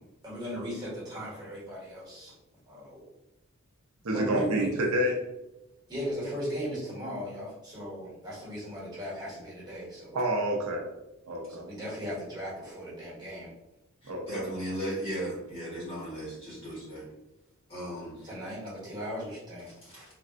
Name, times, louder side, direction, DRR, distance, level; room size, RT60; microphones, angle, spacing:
voice 1, 0.2-2.4 2.7-3.1 4.1-4.7 5.9-10.2 11.5-13.5 18.2-20.1, equal, 20° right, -7 dB, 1.3 m, -37 dB
voice 2, 4.0-5.1 10.1-10.8 11.3-11.7 14.1-14.5, right 1 dB, 75° right, 0 dB, 0.5 m, -28 dB
voice 3, 14.0-17.1 17.7-18.3 19.8-20.1, equal, 25° left, -7 dB, 1.2 m, -36 dB
3.3 x 2.5 x 2.4 m, 0.97 s
head